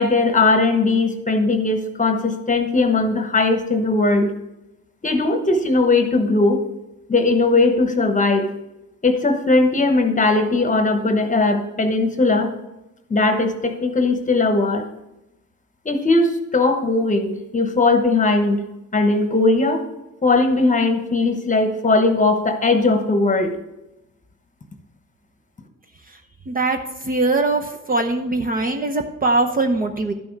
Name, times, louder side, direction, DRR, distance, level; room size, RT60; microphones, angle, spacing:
voice 1, 0.0-4.3 5.0-6.6 7.1-8.5 9.0-12.5 13.1-14.9 15.8-18.6 18.9-19.8 20.2-23.5, left 3 dB, 25° left, 7 dB, 1.1 m, -18 dB
voice 2, 26.5-30.1, right 2 dB, 30° right, 3 dB, 0.9 m, -21 dB
11.5 x 6.2 x 4.7 m, 0.93 s
cardioid pair, 90°, 30 cm